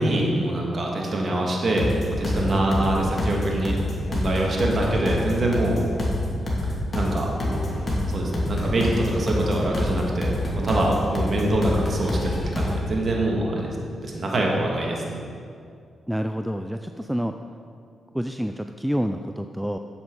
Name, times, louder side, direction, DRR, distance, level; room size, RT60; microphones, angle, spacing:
voice 1, 0.0-1.9 2.2-3.8 4.1-5.8 6.6-7.3 8.1-13.8 14.0-15.2, right 1 dB, 50° right, -1 dB, 1.8 m, -24 dB
sound 1, 1.7-12.7, left 1 dB, 35° left, 2.6 m, -27 dB
voice 2, 2.4-3.1 16.1-17.3 18.1-19.8, equal, 5° right, 7 dB, 0.4 m, -28 dB
7.9 x 7.9 x 5.4 m, 2.4 s
cardioid pair, 60°, 0 cm